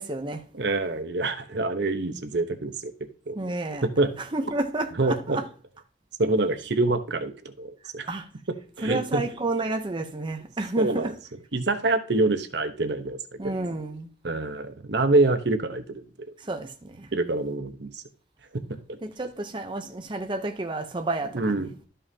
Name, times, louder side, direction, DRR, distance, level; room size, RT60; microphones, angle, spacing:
voice 1, 0.0-0.4 3.4-3.9 4.3-5.4 8.1-8.3 8.8-11.1 13.4-14.1 16.4-17.1 19.0-21.6, right 2 dB, 25° right, 0.7 m, -30 dB
voice 2, 0.5-2.9 3.3-3.4 3.8-4.1 5.0-5.4 6.2-8.1 8.8-9.2 10.8-11.1 11.5-13.2 13.4-13.5 14.2-16.1 17.1-18.0 18.5-18.6 18.9-19.0 21.3-21.7, right 2 dB, 65° right, 0.9 m, -26 dB
12.5 x 5.6 x 2.8 m
head